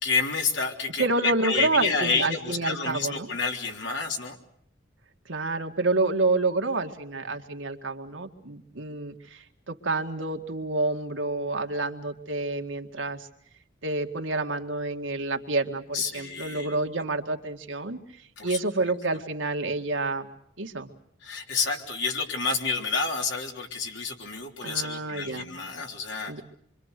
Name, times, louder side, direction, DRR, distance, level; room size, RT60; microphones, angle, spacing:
voice 1, 0.0-4.4 15.9-16.8 18.4-18.6 21.2-26.4, left 4 dB, 70° left, 2 dB, 3.5 m, -29 dB
voice 2, 1.0-3.3 5.3-13.3 13.8-18.0 18.4-20.3 20.6-20.9 24.6-25.5 26.3-26.4, right 2 dB, 80° right, 5 dB, 2.0 m, -28 dB
26.5 x 24.5 x 6.7 m, 0.68 s
head